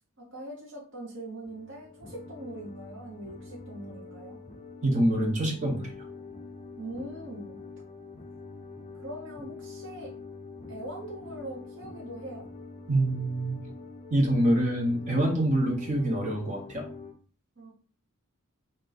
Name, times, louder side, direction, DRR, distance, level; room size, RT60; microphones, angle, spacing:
voice 1, 0.2-4.4 6.8-7.6 8.9-10.1 10.7-12.5 17.6-17.7, right 1 dB, 55° right, -3 dB, 1.1 m, -42 dB
sound 1, 1.4-17.1, left 3 dB, 30° left, 0.6 m, -45 dB
voice 2, 4.8-5.9 12.9-13.6 14.1-16.9, right 1 dB, 35° right, 0 dB, 1.1 m, -25 dB
3.6 x 2.6 x 4.1 m, 0.42 s
head